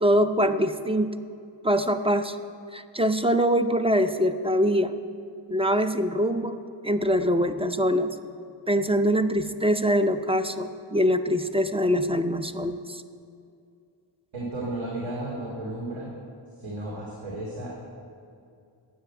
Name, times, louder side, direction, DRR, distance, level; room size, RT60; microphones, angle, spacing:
voice 1, 0.0-1.2 1.6-2.4 2.7-5.0 5.5-6.6 6.8-8.2 8.7-13.0, equal, 15° right, 9 dB, 0.5 m, -23 dB
voice 2, 14.3-16.1 16.6-17.7, right 1 dB, 80° right, -5 dB, 2.6 m, -33 dB
10.0 x 7.8 x 9.2 m, 2.4 s
wide cardioid pair, 115°, 46 cm